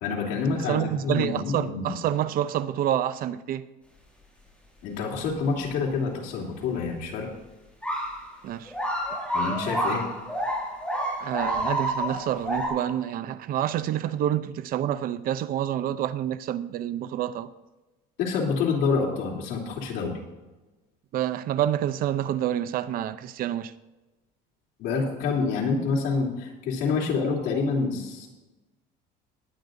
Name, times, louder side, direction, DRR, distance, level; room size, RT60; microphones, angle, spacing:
voice 1, 0.0-2.0 4.8-7.3 9.3-10.1 18.2-20.2 24.8-28.3, left 4 dB, 75° left, 3.1 m, -27 dB
voice 2, 0.6-3.7 8.4-8.7 11.2-17.5 21.1-23.7, right 11 dB, 50° right, 0.5 m, -28 dB
sound 1, 7.8-8.2 8.7-12.7, equal, 5° left, 4.6 m, -29 dB
19.5 x 9.1 x 2.6 m
cardioid pair, 145°, 19 cm